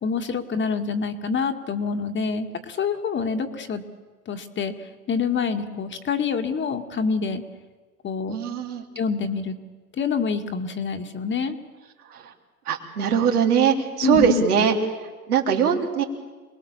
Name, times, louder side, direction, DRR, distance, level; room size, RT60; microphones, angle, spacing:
voice 1, 0.0-3.8 4.3-7.4 8.0-8.4 9.0-9.6 10.0-11.6 14.0-14.4, left 5 dB, 25° left, 6 dB, 1.9 m, -26 dB
voice 2, 8.3-8.8 12.1-12.3 12.7-16.0, right 7 dB, 75° right, 1 dB, 3.6 m, -22 dB
27.5 x 20.0 x 7.2 m, 1.3 s
hypercardioid pair, 95°, 46 cm